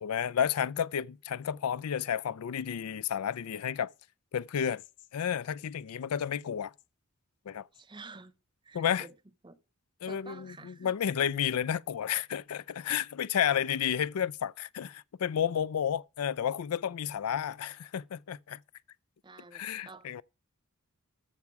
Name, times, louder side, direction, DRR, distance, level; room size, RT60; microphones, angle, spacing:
voice 1, 0.0-3.9 4.3-4.8 5.1-6.7 7.5-7.7 8.7-9.1 10.0-18.6 19.5-20.2, left 8 dB, 85° left, 0.4 m, -31 dB
voice 2, 7.7-8.3 8.6-9.2 9.4-9.6 10.0-10.9 13.4-13.5 19.2-20.2, right 3 dB, 20° right, 0.7 m, -49 dB
14.0 x 5.9 x 4.7 m
head